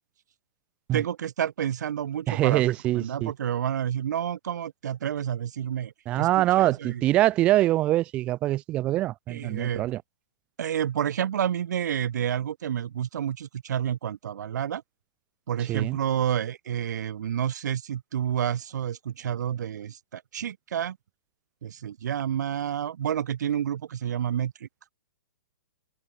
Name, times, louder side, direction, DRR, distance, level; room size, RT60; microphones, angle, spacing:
voice 1, 0.9-2.6 2.9-7.0 9.3-9.8 10.6-14.8 15.5-21.0 21.6-24.7, right 9 dB, 60° right, 1.8 m, -29 dB
voice 2, 2.3-3.3 6.1-10.0 15.7-16.0, right 15 dB, 10° right, 0.3 m, -24 dB
hypercardioid pair, 175°, 11 cm